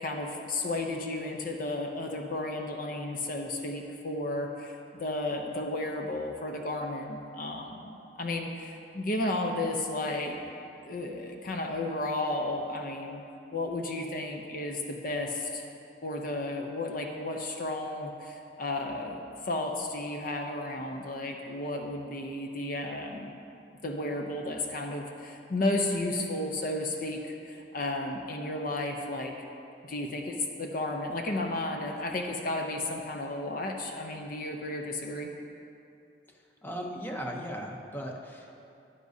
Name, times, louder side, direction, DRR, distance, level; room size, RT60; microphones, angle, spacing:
voice 1, 0.0-10.4 10.8-13.2 13.5-15.7 16.0-23.3 23.8-29.3 29.8-35.3, left 2 dB, 50° left, 2 dB, 0.6 m, -33 dB
voice 2, 36.3-38.6, equal, 10° left, 0 dB, 0.7 m, -38 dB
11.0 x 9.8 x 2.7 m, 2.7 s
head